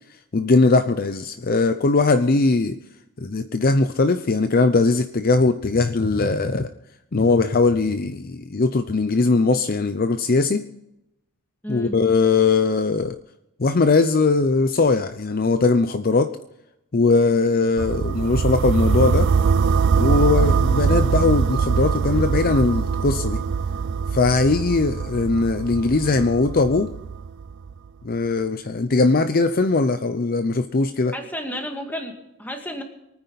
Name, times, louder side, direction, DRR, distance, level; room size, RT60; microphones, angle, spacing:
voice 1, 0.3-2.8 3.2-6.7 7.1-10.6 11.7-13.1 13.6-16.3 16.9-19.3 20.0-23.4 24.1-26.9 28.0-31.1, left 3 dB, 40° left, 9 dB, 0.6 m, -20 dB
voice 2, 11.6-11.9 31.1-32.8, equal, 10° left, 3 dB, 2.1 m, -32 dB
sound 1, 17.8-27.7, right 5 dB, 55° right, 0.4 m, -22 dB
23.5 x 9.7 x 4.1 m, 0.86 s
head